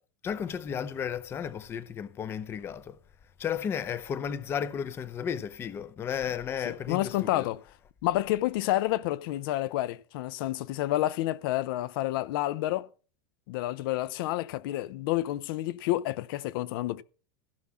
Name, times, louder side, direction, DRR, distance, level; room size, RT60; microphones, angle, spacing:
voice 1, 0.2-3.0 3.4-7.5, left 8 dB, 15° left, 0.6 m, -33 dB
voice 2, 6.7-7.6 8.0-12.9 13.5-17.0, left 15 dB, 55° left, 0.6 m, -29 dB
16.0 x 5.6 x 6.2 m
supercardioid pair, 170°, 14 cm